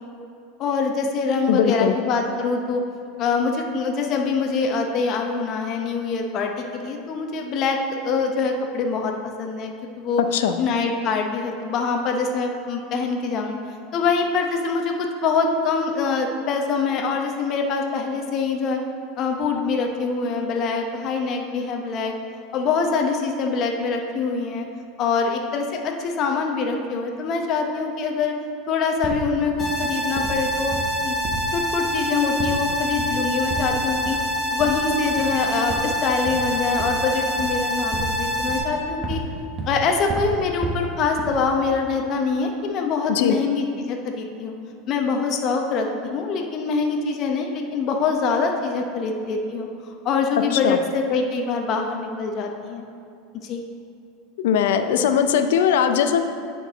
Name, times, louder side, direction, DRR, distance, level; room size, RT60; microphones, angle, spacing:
voice 1, 0.6-2.8 3.2-7.8 8.0-9.1 9.4-10.2 10.6-13.6 13.9-18.8 19.2-22.1 22.5-24.7 25.0-28.3 28.7-30.8 31.0-31.2 31.5-34.2 34.5-39.2 39.7-44.5 44.9-49.7 50.0-52.8 53.4-53.6, left 4 dB, 40° left, 2 dB, 0.7 m, -24 dB
voice 2, 1.5-1.9 10.2-10.5 43.1-43.4 50.5-50.8 54.4-56.2, left 8 dB, 80° left, 8 dB, 0.5 m, -20 dB
sound 1, 29.0-29.3 29.6-29.9 30.2-30.5 30.7-31.5 31.8-32.1 32.4-32.7 33.0-33.2 33.5-33.8 34.0-34.3 34.6-34.9 35.2-35.4 35.7-37.1 37.4-38.2 38.5-39.3 39.6-39.8 40.1-40.9 41.2-41.6, right 3 dB, 30° right, 1.0 m, -32 dB
sound 2, 29.6-38.6, equal, 20° left, 1.3 m, -26 dB
8.9 x 4.6 x 4.0 m, 2.5 s
supercardioid pair, 130°, 0 cm